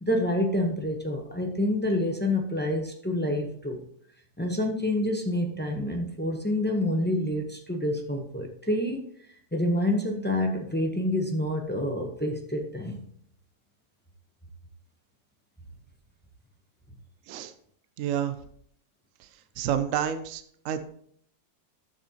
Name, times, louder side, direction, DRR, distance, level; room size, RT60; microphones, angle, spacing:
voice 1, 0.0-3.8 4.4-9.1 9.5-13.0, left 1 dB, 15° left, 2 dB, 0.3 m, -27 dB
voice 2, 18.0-18.3 19.6-20.8, right 9 dB, 65° right, 10 dB, 0.8 m, -29 dB
11.0 x 6.9 x 2.9 m, 0.65 s
omnidirectional pair, 1.9 m